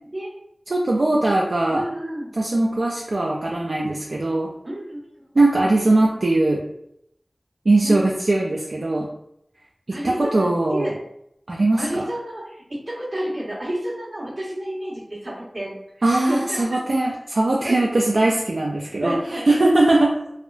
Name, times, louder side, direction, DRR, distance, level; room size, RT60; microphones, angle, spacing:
voice 1, 0.7-1.8 2.4-4.5 5.4-6.6 7.7-9.1 9.9-10.9 11.5-12.0 16.0-20.1, right 2 dB, 85° right, -3 dB, 0.3 m, -20 dB
voice 2, 1.7-2.3 4.6-5.0 7.8-8.1 9.9-10.9 11.8-15.8 16.3-16.8 17.6-18.0 18.8-19.6, right 1 dB, 65° right, -5 dB, 1.1 m, -30 dB
3.4 x 2.2 x 2.5 m, 0.76 s
wide cardioid pair, 40°, 0 cm